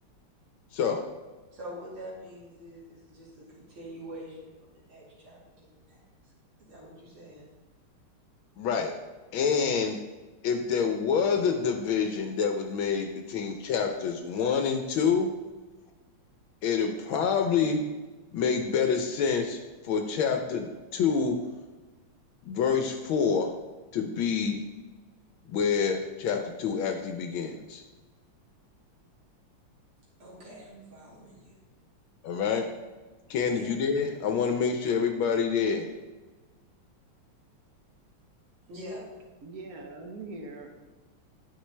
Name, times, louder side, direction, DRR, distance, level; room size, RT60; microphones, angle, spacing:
voice 1, 0.7-1.0 8.6-8.9 9.3-10.0 10.4-15.3 16.6-17.9 18.3-21.4 22.4-23.5 23.9-24.6 25.5-27.8 32.2-32.7 33.3-35.9, left 6 dB, 75° left, 5 dB, 1.3 m, -27 dB
voice 2, 1.5-6.0 6.2-6.3 6.6-7.4 12.9-13.0 30.2-31.6 33.5-33.7 38.7-39.1, equal, 70° right, -6 dB, 2.9 m, -45 dB
voice 3, 39.4-40.8, right 3 dB, 55° right, 2 dB, 1.1 m, -42 dB
9.9 x 6.1 x 3.2 m, 1.2 s
omnidirectional pair, 2.4 m